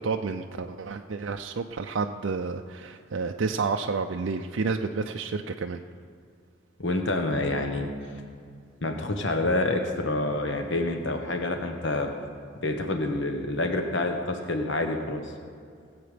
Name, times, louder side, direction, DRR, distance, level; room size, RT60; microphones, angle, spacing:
voice 1, 0.0-5.8, right 4 dB, 70° right, 5 dB, 0.5 m, -30 dB
voice 2, 6.8-7.9 8.8-12.1 12.6-15.2, left 2 dB, 60° left, 4 dB, 1.3 m, -27 dB
19.5 x 8.0 x 5.1 m, 2.3 s
head